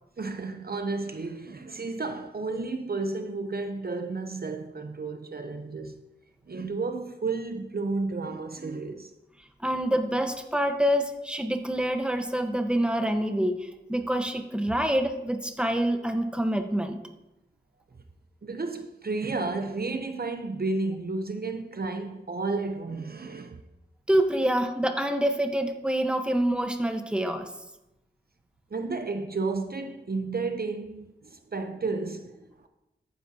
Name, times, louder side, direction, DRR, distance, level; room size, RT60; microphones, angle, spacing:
voice 1, 0.2-6.0 6.5-9.1 18.4-23.6 28.7-32.7, right 3 dB, 55° right, 0.7 m, -32 dB
voice 2, 9.6-17.0 24.1-27.5, right 1 dB, 5° right, 1.1 m, -26 dB
14.0 x 9.5 x 2.8 m
wide cardioid pair, 45°, 19 cm